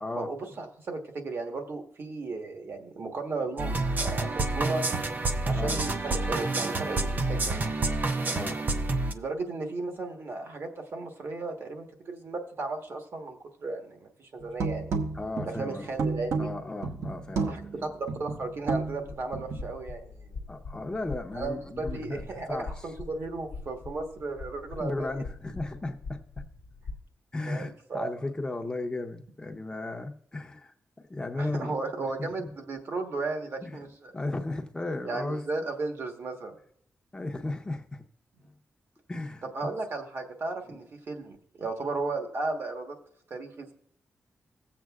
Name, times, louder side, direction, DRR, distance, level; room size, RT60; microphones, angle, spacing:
voice 1, 0.1-4.8 5.4-7.7 9.1-15.1 15.4-16.5 17.4-20.4 21.3-25.2 27.5-28.1 31.4-34.1 35.0-36.6 39.5-43.0 43.3-43.7, right 3 dB, 50° right, 3 dB, 1.3 m, -35 dB
sound 1, 3.6-9.1, right 2 dB, 35° right, 0.6 m, -28 dB
voice 2, 8.3-8.6 15.1-15.9 16.4-17.9 20.5-22.2 22.5-22.7 24.8-26.2 27.3-32.5 33.6-33.9 34.1-35.5 37.1-38.0 39.1-39.4 40.7-40.8, left 2 dB, 15° left, 5 dB, 0.8 m, -35 dB
sound 2, 14.4-19.7, right 4 dB, 70° right, 1.0 m, -32 dB
sound 3, 19.0-27.0, left 3 dB, 75° left, 0.7 m, -43 dB
17.0 x 7.6 x 2.4 m, 0.68 s
wide cardioid pair, 165°, 5 cm